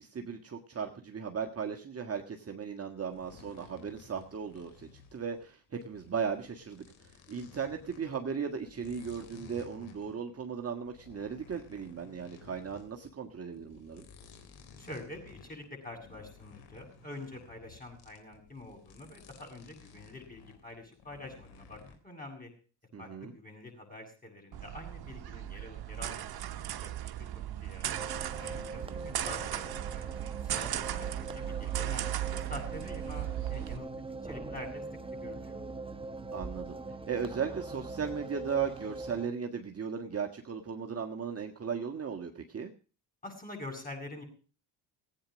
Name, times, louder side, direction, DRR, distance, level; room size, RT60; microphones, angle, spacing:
voice 1, 0.0-14.1 22.9-23.3 28.8-29.2 36.3-36.8 37.1-42.7, right 6 dB, 30° right, 3 dB, 1.7 m, -37 dB
sound 1, 3.1-22.0, left 5 dB, 75° left, 3.5 m, -55 dB
voice 2, 14.8-22.5 23.0-26.9 27.6-28.0 28.3-33.9 34.2-34.8 35.2-35.6 43.2-44.2, left 2 dB, 15° left, 3 dB, 7.8 m, -46 dB
sound 2, 24.5-33.8, right 13 dB, 50° right, 1.3 m, -37 dB
sound 3, 27.9-39.3, right 3 dB, 10° right, 1.1 m, -42 dB
16.0 x 9.1 x 6.4 m, 0.38 s
hypercardioid pair, 70°, 49 cm